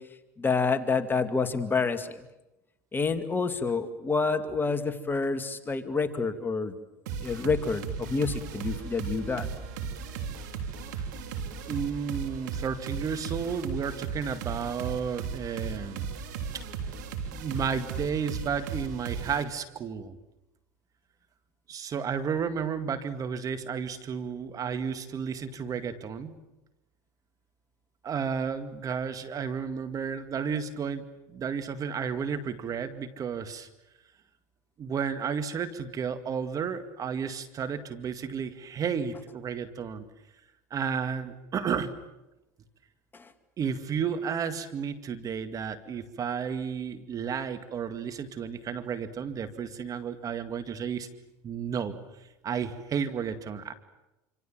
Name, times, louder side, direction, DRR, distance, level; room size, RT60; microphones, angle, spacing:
voice 1, 0.4-2.1 2.9-6.7 7.2-9.5, left 4 dB, 20° left, 8 dB, 2.3 m, -28 dB
sound 1, 7.1-19.4, right 6 dB, 80° right, 3.3 m, -36 dB
voice 2, 11.7-16.1 17.3-20.2 21.7-26.4 28.0-33.7 34.8-40.1 40.7-42.0 43.6-51.1 51.4-52.0 52.4-53.7, right 6 dB, 40° right, 9 dB, 2.1 m, -32 dB
27.0 x 26.0 x 7.5 m, 0.96 s
supercardioid pair, 95°, 10 cm